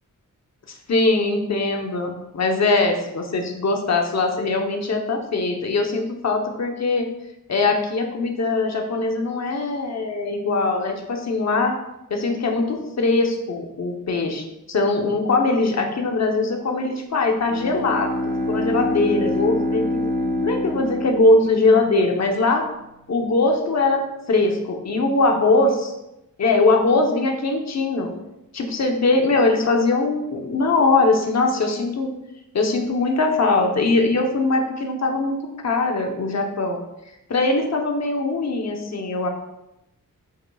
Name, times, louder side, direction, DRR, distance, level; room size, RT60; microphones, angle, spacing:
voice 1, 0.7-7.1 7.5-11.7 12.1-18.1 18.5-20.0 20.4-22.6 23.1-25.9 26.4-28.1 28.5-32.1 32.5-35.3 35.6-36.8 37.3-39.3, left 3 dB, 55° left, 2 dB, 0.9 m, -21 dB
Bowed string instrument, 17.3-22.0, left 1 dB, 10° left, 1.1 m, -26 dB
8.0 x 5.2 x 2.3 m, 0.90 s
wide cardioid pair, 165°, 33 cm